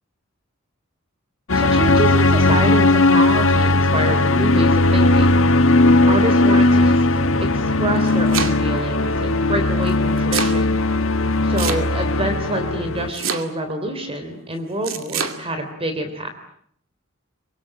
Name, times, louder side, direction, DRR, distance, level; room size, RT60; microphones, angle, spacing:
sound 1, 1.5-13.1, left 2 dB, 70° left, 1.5 m, -17 dB
voice 1, 1.5-5.4 6.1-7.0 7.4-10.8 11.4-16.3, right 1 dB, 30° right, 6 dB, 3.5 m, -27 dB
Domestic sounds home sounds, 7.8-8.8 9.9-10.6 11.6-12.2 13.1-13.8 14.8-15.4, right 6 dB, 75° right, 2.4 m, -26 dB
25.0 x 23.5 x 8.9 m, 0.68 s
head